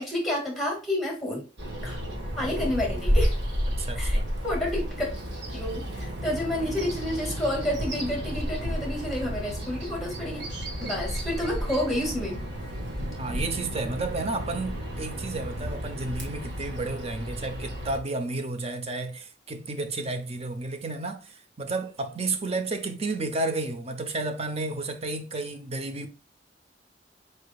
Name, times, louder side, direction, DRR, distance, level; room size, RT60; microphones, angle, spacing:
voice 1, 0.0-1.4 1.8-2.0 2.4-3.3 4.0-5.1 5.5-10.4 10.8-12.4, left 1 dB, ahead, 2.1 m, -30 dB
Bird vocalization bird call bird song, 1.6-18.0, equal, 85° right, 1.4 m, -32 dB
voice 2, 3.7-4.4 13.2-26.1, right 2 dB, 35° right, 0.7 m, -32 dB
4.8 x 4.5 x 2.3 m
head